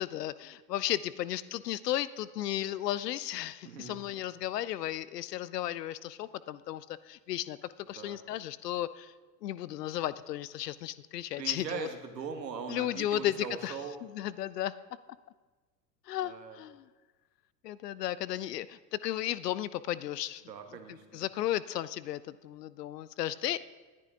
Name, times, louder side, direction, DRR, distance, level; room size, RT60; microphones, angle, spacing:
voice 1, 0.0-7.6 7.9-9.1 9.4-11.9 12.7-13.7 14.1-14.7 16.1-16.8 17.6-20.4 21.1-23.6, left 13 dB, 70° left, 17 dB, 0.7 m, -34 dB
voice 2, 3.6-4.0 7.9-8.2 11.4-14.0 16.2-16.6 20.5-21.2, right 6 dB, 80° right, 6 dB, 1.6 m, -40 dB
19.5 x 10.5 x 3.8 m, 1.3 s
figure-of-eight pair, 80°, 49 cm